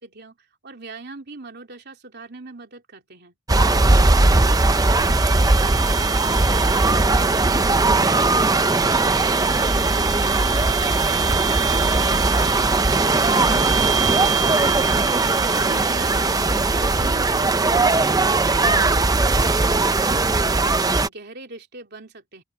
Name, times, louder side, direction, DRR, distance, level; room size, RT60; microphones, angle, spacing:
voice 1, 0.0-3.4 15.4-19.3 19.8-22.4, right 3 dB, 50° right, 3.3 m, -41 dB
sound 1, 3.5-21.1, right 3 dB, 20° right, 0.6 m, -19 dB
sound 2, 4.1-16.9, right 13 dB, 85° right, 4.5 m, -33 dB
voice 2, 4.7-4.8, left 2 dB, 35° left, 7.2 m, -46 dB
open air
head